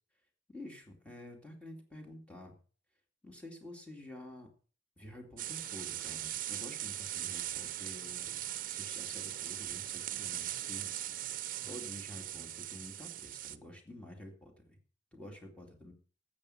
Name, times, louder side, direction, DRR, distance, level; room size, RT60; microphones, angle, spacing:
voice 1, 0.5-2.5 3.2-4.5 5.0-8.4 8.7-11.1 11.6-14.8 15.1-15.9, left 1 dB, 5° left, 2 dB, 2.3 m, -49 dB
sound 1, 5.4-13.6, right 13 dB, 50° right, 0.7 m, -40 dB
13.0 x 8.3 x 5.6 m, 0.41 s
head